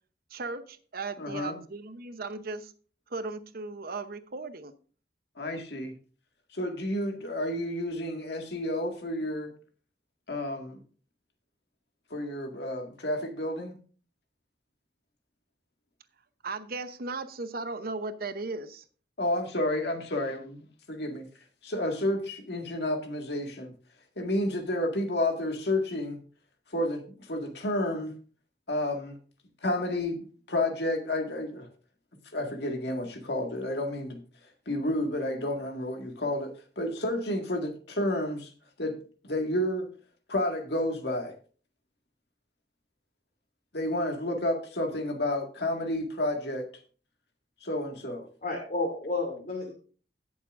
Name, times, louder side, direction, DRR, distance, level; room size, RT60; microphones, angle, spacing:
voice 1, 0.3-2.7 3.1-4.7 16.4-18.8, right 3 dB, 55° right, 0.9 m, -36 dB
voice 2, 1.2-1.6 5.4-5.9 6.5-9.5 10.3-10.8 12.1-13.8 19.2-21.3 21.6-23.7 24.2-26.2 26.7-28.1 28.7-29.2 29.6-31.7 32.3-34.2 34.7-38.5 38.8-39.0 39.2-39.9 40.3-41.3 43.7-46.7 47.6-48.3, left 1 dB, 65° left, 1.9 m, -30 dB
voice 3, 48.4-49.7, left 3 dB, 45° left, 2.7 m, -31 dB
17.0 x 7.1 x 2.6 m
head